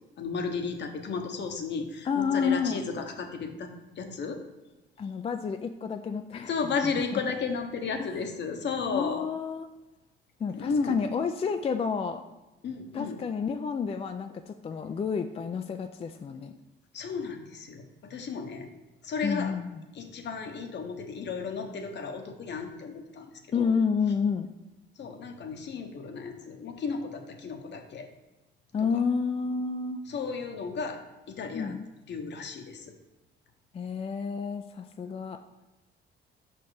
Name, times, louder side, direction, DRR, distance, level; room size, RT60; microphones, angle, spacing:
voice 1, 0.2-3.7 4.0-4.4 6.5-9.3 10.6-11.0 12.6-13.2 16.9-18.7 19.0-19.5 19.9-23.3 23.5-23.7 25.0-28.1 28.8-29.0 30.1-31.0 31.3-31.8 32.1-32.9, left 5 dB, 60° left, 5 dB, 1.0 m, -33 dB
voice 2, 2.1-2.8 5.0-6.5 7.1-7.2 8.9-9.7 10.4-12.2 12.9-16.5 19.2-19.8 23.5-24.5 28.7-30.0 31.5-31.9 33.7-35.4, left 6 dB, 30° left, 6 dB, 0.3 m, -30 dB
5.5 x 4.4 x 4.8 m, 1.1 s
cardioid pair, 90°, 20 cm